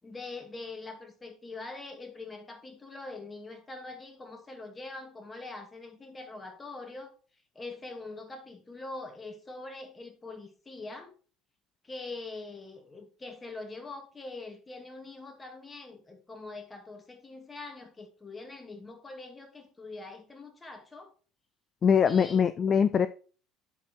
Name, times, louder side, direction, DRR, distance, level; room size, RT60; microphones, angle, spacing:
voice 1, 0.0-7.1 7.5-11.1 11.8-21.1 22.0-22.4, left 3 dB, 20° left, 2.3 m, -43 dB
voice 2, 21.8-23.1, left 7 dB, 40° left, 0.4 m, -22 dB
11.0 x 4.3 x 4.5 m
hypercardioid pair, 70°, 0 cm